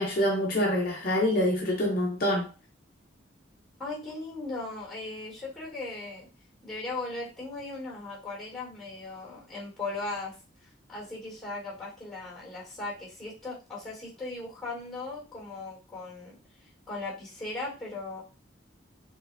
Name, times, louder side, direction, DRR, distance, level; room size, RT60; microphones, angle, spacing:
voice 1, 0.0-2.5, left 1 dB, 45° left, 0.7 m, -26 dB
voice 2, 3.8-6.3 6.6-10.3 10.9-16.4 16.9-18.2, left 2 dB, ahead, 2.1 m, -38 dB
4.4 x 3.1 x 2.6 m
head